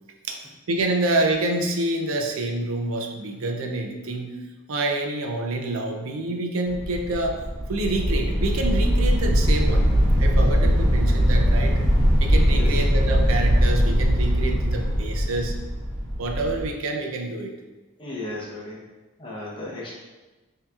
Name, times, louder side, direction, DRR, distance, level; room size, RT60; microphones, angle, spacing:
voice 1, 0.3-4.4 4.7-7.4 7.7-9.9 10.2-11.8 12.2-15.5 16.2-17.5, right 2 dB, 80° right, 3 dB, 0.5 m, -27 dB
sound 1, 6.7-16.7, equal, 55° right, 0.9 m, -21 dB
voice 2, 12.5-12.8 18.0-18.8 19.2-20.0, left 2 dB, 25° left, -5 dB, 0.8 m, -35 dB
5.7 x 2.8 x 2.4 m, 1.2 s
head